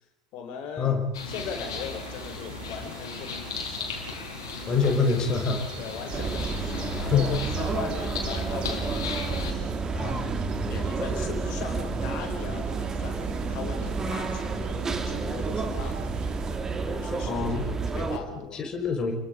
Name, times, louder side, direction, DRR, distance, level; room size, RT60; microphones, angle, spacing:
voice 1, 0.3-0.9 1.2-3.9 5.8-16.1 16.9-18.7, left 6 dB, 50° left, 4 dB, 4.6 m, -39 dB
sound 1, 1.1-9.5, left 5 dB, 65° left, 4.1 m, -36 dB
sound 2, 1.3-16.6, right 10 dB, 40° right, 1.9 m, -43 dB
voice 2, 4.7-5.6 7.1-7.3 17.2-17.6 18.1-19.1, left 5 dB, 30° left, 3 dB, 4.9 m, -25 dB
sound 3, 6.1-18.2, right 4 dB, 20° right, 2.6 m, -30 dB
29.0 x 22.5 x 5.3 m, 0.86 s
figure-of-eight pair, 75°, 2 cm